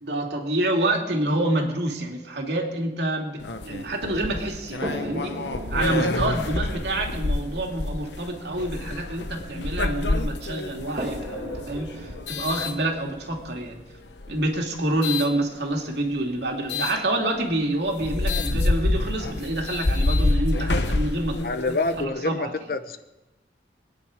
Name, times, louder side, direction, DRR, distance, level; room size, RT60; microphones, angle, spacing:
voice 1, 0.0-5.4 5.7-13.8 14.3-21.4 22.0-22.5, right 1 dB, 75° right, 1 dB, 2.5 m, -27 dB
sound 1, 3.4-13.4 14.1-15.3 16.7-17.0 17.5-17.6 17.9-22.0, left 2 dB, 85° left, 1.0 m, -27 dB
sound 2, 4.8-10.0 11.0-14.9 15.9-16.0 16.4-16.5, equal, 45° right, 2.1 m, -39 dB
voice 2, 21.4-23.0, left 2 dB, 55° left, 10 dB, 0.8 m, -27 dB
23.0 x 9.7 x 5.0 m, 1.0 s
head